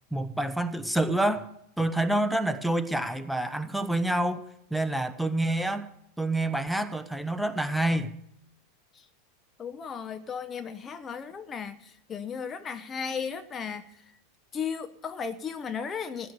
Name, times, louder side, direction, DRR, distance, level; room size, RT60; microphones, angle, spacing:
voice 1, 0.1-1.5 1.8-4.4 4.7-5.9 6.2-8.1, right 1 dB, ahead, 1.0 m, -27 dB
voice 2, 9.6-13.9 14.5-16.3, left 6 dB, 25° left, 0.8 m, -35 dB
15.5 x 9.7 x 6.9 m
figure-of-eight pair, 90°, 0 cm